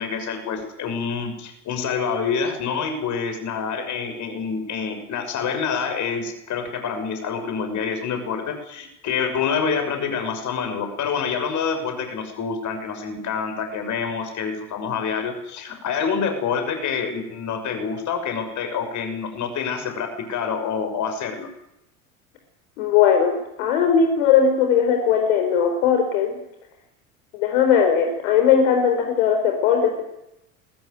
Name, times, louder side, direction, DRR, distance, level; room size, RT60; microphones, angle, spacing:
voice 1, 0.0-21.5, left 6 dB, 40° left, 6 dB, 6.3 m, -27 dB
voice 2, 22.8-26.4 27.3-30.0, left 7 dB, 60° left, 4 dB, 4.7 m, -19 dB
21.0 x 18.5 x 9.4 m, 0.84 s
figure-of-eight pair, 70°, 44 cm